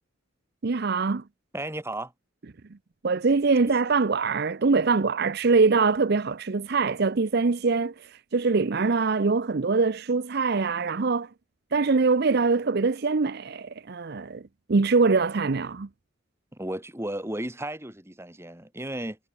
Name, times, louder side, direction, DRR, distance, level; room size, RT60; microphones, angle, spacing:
voice 1, 0.6-1.2 3.0-7.9 8.3-11.3 11.7-14.4 14.7-15.9, right 4 dB, 55° right, 0.6 m, -23 dB
voice 2, 1.5-2.1 16.5-19.2, right 1 dB, 15° right, 3.2 m, -34 dB
head